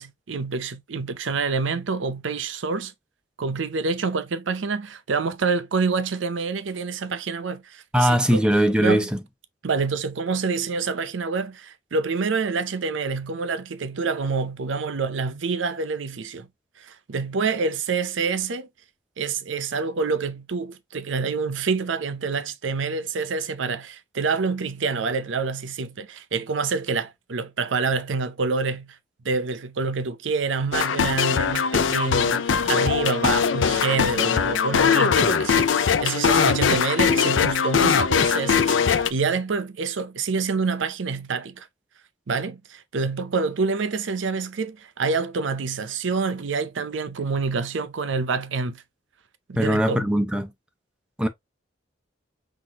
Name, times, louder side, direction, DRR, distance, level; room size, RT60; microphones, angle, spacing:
voice 1, 0.0-2.9 3.4-8.4 8.8-9.1 9.6-16.5 16.8-18.7 19.2-29.0 29.2-41.7 42.3-48.8 49.5-50.1, right 4 dB, 80° right, 0.6 m, -27 dB
voice 2, 7.9-9.1 49.6-50.5 51.2-51.3, equal, 5° right, 0.6 m, -20 dB
sound 1, 30.7-39.1, left 6 dB, 80° left, 0.5 m, -21 dB
5.9 x 2.5 x 2.8 m
head